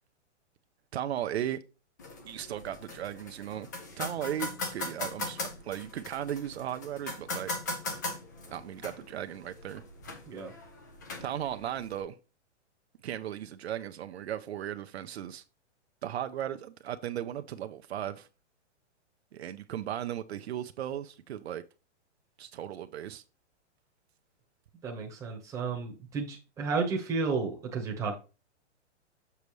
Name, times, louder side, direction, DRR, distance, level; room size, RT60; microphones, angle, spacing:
voice 1, 0.9-1.6 2.2-3.7 4.0-7.5 8.5-9.8 11.2-12.2 13.0-15.4 16.0-18.3 19.3-21.6 22.4-23.2, right 11 dB, 60° right, 0.6 m, -36 dB
sound 1, 2.0-12.0, left 2 dB, 15° left, 0.4 m, -40 dB
voice 2, 24.8-28.1, right 4 dB, 10° right, 1.1 m, -32 dB
6.9 x 6.5 x 3.1 m
hypercardioid pair, 165°, 36 cm